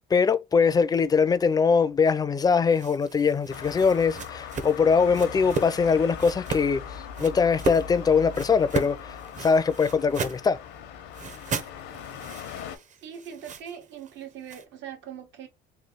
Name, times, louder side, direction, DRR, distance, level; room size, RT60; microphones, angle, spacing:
voice 1, 0.1-10.6, left 5 dB, 20° left, 0.4 m, -22 dB
sound 1, 2.7-5.8 6.2-6.7 7.1-7.9 8.3-10.5 11.1-14.6, right 4 dB, 40° right, 0.8 m, -35 dB
Traffic noise roadway noise, 3.5-12.8, left 8 dB, 85° left, 0.8 m, -40 dB
voice 2, 13.0-15.5, right 8 dB, 75° right, 1.3 m, -41 dB
3.2 x 2.4 x 3.8 m
cardioid pair, 95°, 19 cm